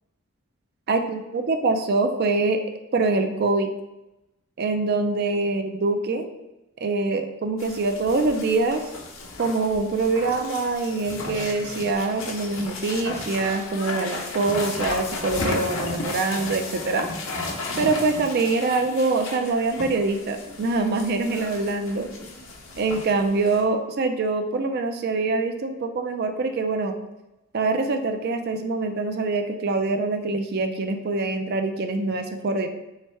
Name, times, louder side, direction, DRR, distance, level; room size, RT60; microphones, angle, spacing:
voice 1, 0.9-2.6 2.9-3.7 4.6-6.3 6.8-8.8 9.4-17.1 17.8-22.1 22.8-27.0 27.5-32.7, right 3 dB, 45° right, 6 dB, 0.4 m, -24 dB
sound 1, 7.6-23.6, left 2 dB, 60° left, 0.8 m, -34 dB
3.5 x 3.2 x 4.3 m, 0.97 s
head